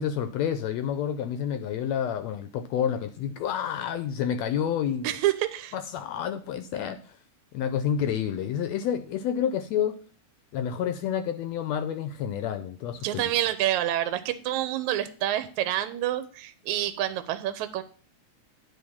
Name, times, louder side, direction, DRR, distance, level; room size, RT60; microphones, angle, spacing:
voice 1, 0.0-5.1 5.7-7.2 7.5-10.0 10.5-13.2, left 8 dB, 75° left, 9 dB, 1.6 m, -29 dB
voice 2, 5.0-5.7 13.0-17.8, right 13 dB, 80° right, 9 dB, 2.0 m, -28 dB
9.8 x 3.7 x 7.0 m, 0.42 s
omnidirectional pair, 3.5 m